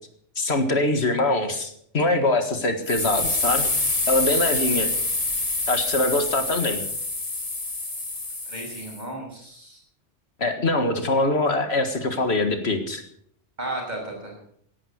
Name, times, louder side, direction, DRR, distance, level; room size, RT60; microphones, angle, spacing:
voice 1, 0.4-3.7 4.1-4.9 5.7-6.8 10.4-13.0, left 2 dB, 65° left, 7 dB, 2.0 m, -23 dB
sound 1, 2.9-9.0, left 2 dB, 30° left, 2.0 m, -26 dB
voice 2, 4.5-4.8 8.5-9.8 13.6-14.4, right 1 dB, 40° right, 0 dB, 6.4 m, -34 dB
18.0 x 11.0 x 6.4 m, 0.65 s
omnidirectional pair, 1.2 m